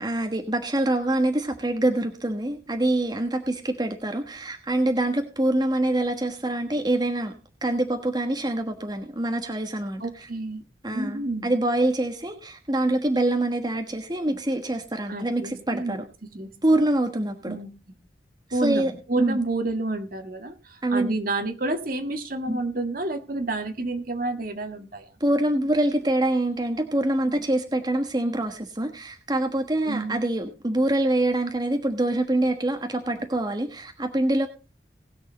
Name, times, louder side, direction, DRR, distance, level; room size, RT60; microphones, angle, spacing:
voice 1, 0.0-7.3 7.6-10.0 10.8-16.0 16.6-17.6 18.6-18.9 19.2-19.4 20.8-21.1 22.5-22.6 25.2-34.5, right 1 dB, 25° right, 5 dB, 1.3 m, -25 dB
voice 2, 10.0-10.6 10.9-11.5 15.1-16.0 16.3-16.5 17.5-18.0 18.5-25.1 29.9-30.2, right 2 dB, 50° right, 6 dB, 1.8 m, -30 dB
20.0 x 6.6 x 4.0 m, 0.32 s
head